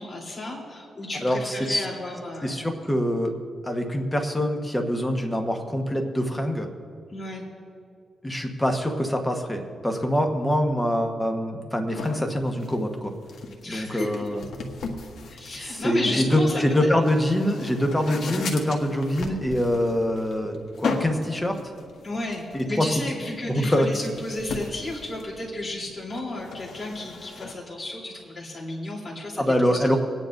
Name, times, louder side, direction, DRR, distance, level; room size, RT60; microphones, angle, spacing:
voice 1, 0.0-2.6 7.1-7.5 13.6-14.3 15.3-16.9 22.0-29.8, left 2 dB, 35° left, -4 dB, 3.3 m, -33 dB
voice 2, 1.2-1.9 2.4-3.3 3.6-6.7 8.2-13.1 13.7-14.4 15.6-21.7 22.5-22.9 23.4-23.9 29.4-30.0, equal, 10° left, 3 dB, 1.2 m, -24 dB
sound 1, 11.9-27.5, left 4 dB, 80° left, 1.2 m, -37 dB
26.5 x 9.8 x 2.6 m, 2.3 s
cardioid pair, 115°, 0 cm